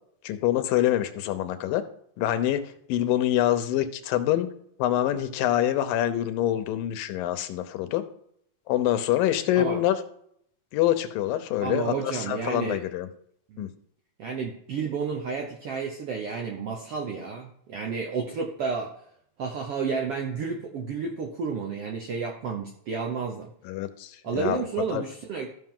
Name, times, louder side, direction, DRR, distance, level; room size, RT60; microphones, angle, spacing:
voice 1, 0.2-1.8 2.2-2.6 2.9-4.5 4.8-8.0 8.7-10.0 10.7-13.1 13.6-13.7 23.7-24.7 24.9-25.0, left 12 dB, 90° left, 10 dB, 2.5 m, -25 dB
voice 2, 11.6-12.8 13.5-13.7 14.2-18.9 19.4-23.5 24.2-25.5, right 5 dB, 75° right, 2 dB, 1.3 m, -31 dB
14.5 x 5.8 x 3.7 m, 0.69 s
omnidirectional pair, 3.9 m